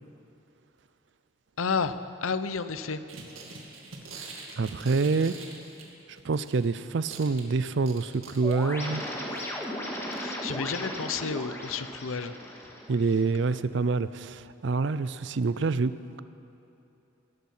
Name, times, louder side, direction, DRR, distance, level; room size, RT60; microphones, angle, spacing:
voice 1, 1.6-1.9 2.2-3.0 10.2-12.3, left 5 dB, 90° left, 12 dB, 0.7 m, -31 dB
sound 1, 3.1-6.7 6.9-8.9 9.4-9.6 10.1-10.2 10.5-10.6, right 4 dB, 90° right, 2.1 m, -44 dB
voice 2, 4.6-5.3 6.2-9.0 12.9-15.9, right 4 dB, 60° right, 15 dB, 0.5 m, -26 dB
sound 2, 8.4-13.4, equal, 10° left, 1.9 m, -36 dB
18.0 x 12.0 x 5.6 m, 3.0 s
head